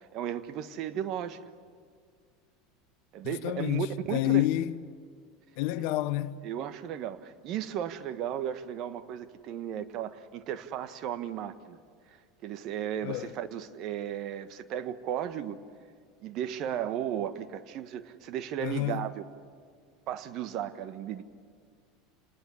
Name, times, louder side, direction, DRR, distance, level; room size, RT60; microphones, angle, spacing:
voice 1, 0.0-1.4 3.1-4.5 6.4-11.8 12.1-12.2 12.4-15.6 16.2-19.3 20.1-21.2, right 10 dB, 50° right, 1.4 m, -35 dB
voice 2, 3.2-4.7 5.6-6.4 13.0-13.3 18.6-19.1, left 16 dB, 60° left, 0.8 m, -29 dB
29.0 x 20.0 x 9.9 m
hypercardioid pair, 80°, 0 cm